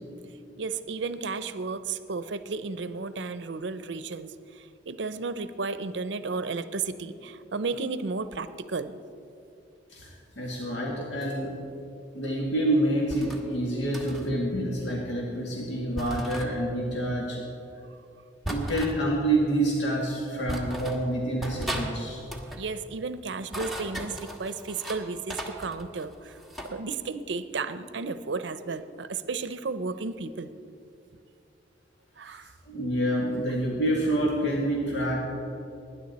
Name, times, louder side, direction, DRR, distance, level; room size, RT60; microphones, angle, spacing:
voice 1, 0.6-9.0 22.5-26.4 26.6-30.5 32.2-32.5, right 4 dB, 75° right, 13 dB, 0.6 m, -33 dB
voice 2, 9.9-11.6 12.1-17.4 18.5-22.2 32.3-32.4 32.7-35.2, right 1 dB, 75° left, -3 dB, 2.0 m, -27 dB
sound 1, 13.1-13.4 13.9-14.3 16.0-16.5 18.4-19.0 19.9-20.0 20.5-21.0 21.4-21.9 22.2-22.6 23.3-25.0 25.3-26.7, right 1 dB, ahead, 1.3 m, -36 dB
19.0 x 10.0 x 4.2 m, 2.6 s
head